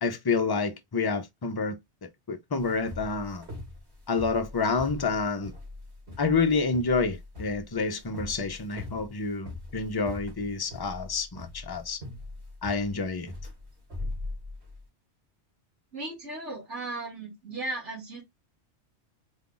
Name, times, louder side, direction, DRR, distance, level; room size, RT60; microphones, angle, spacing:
voice 1, 0.0-3.5 4.1-5.5 6.2-12.0 12.6-13.3, left 4 dB, 30° left, 0.5 m, -28 dB
sound 1, 2.6-14.8, left 2 dB, 70° right, 2.2 m, -41 dB
voice 2, 15.9-18.2, right 2 dB, 90° right, 2.4 m, -36 dB
4.3 x 2.4 x 3.8 m
omnidirectional pair, 1.2 m